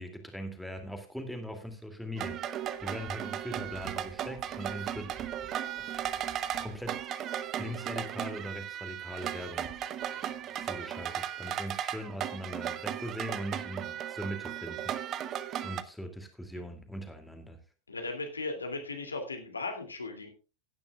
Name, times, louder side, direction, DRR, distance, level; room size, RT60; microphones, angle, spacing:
voice 1, 0.0-5.1 5.9-6.0 6.6-7.0 7.6-9.7 10.6-17.6, equal, ahead, 5 dB, 2.4 m, -41 dB
sound 1, 2.2-15.8, right 10 dB, 30° right, 0.8 m, -36 dB
voice 2, 17.9-20.3, left 3 dB, 75° left, 5 dB, 2.5 m, -37 dB
16.5 x 10.5 x 2.3 m, 0.33 s
figure-of-eight pair, 90°, 0 cm